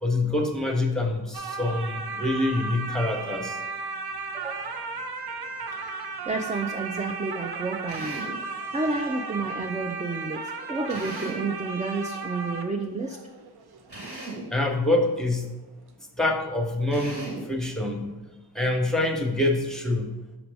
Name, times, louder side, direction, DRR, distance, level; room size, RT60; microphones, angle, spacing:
voice 1, 0.0-3.6 14.5-15.5 16.2-18.1 18.5-20.1, left 2 dB, ahead, 3 dB, 0.9 m, -26 dB
sound 1, 1.3-15.2 15.5-15.6, right 4 dB, 65° right, 0.6 m, -35 dB
voice 2, 4.3-4.9 6.3-13.2, right 3 dB, 20° right, 4 dB, 0.3 m, -31 dB
Drill, 7.9-8.4 10.9-11.5 13.9-14.5 16.9-17.5, right 2 dB, 80° right, 2.0 m, -37 dB
6.0 x 4.9 x 3.4 m, 1.1 s
wide cardioid pair, 50°, 43 cm